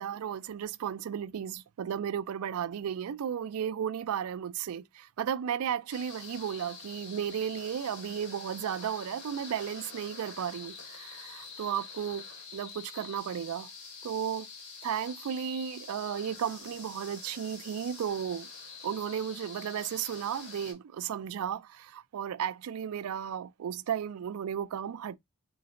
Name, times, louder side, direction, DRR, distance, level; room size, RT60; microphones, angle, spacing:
voice 1, 0.0-12.3 12.5-13.7 14.0-14.5 14.8-18.5 18.8-25.2, right 8 dB, 85° right, 0.3 m, -34 dB
sound 1, 5.9-20.7, left 4 dB, 75° left, 2.5 m, -46 dB
4.1 x 3.9 x 2.4 m
head